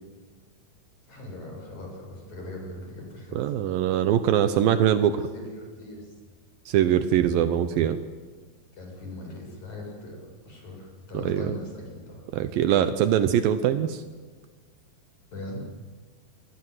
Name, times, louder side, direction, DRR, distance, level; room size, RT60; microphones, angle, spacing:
voice 1, 1.0-3.5 5.0-5.1 5.3-6.1 8.8-12.3 15.3-15.6, left 1 dB, 55° left, 1 dB, 8.9 m, -40 dB
voice 2, 3.4-5.2 6.7-8.0 11.1-11.5 12.3-14.0, right 10 dB, 80° right, 9 dB, 2.7 m, -22 dB
29.0 x 22.0 x 8.1 m, 1.4 s
omnidirectional pair, 4.1 m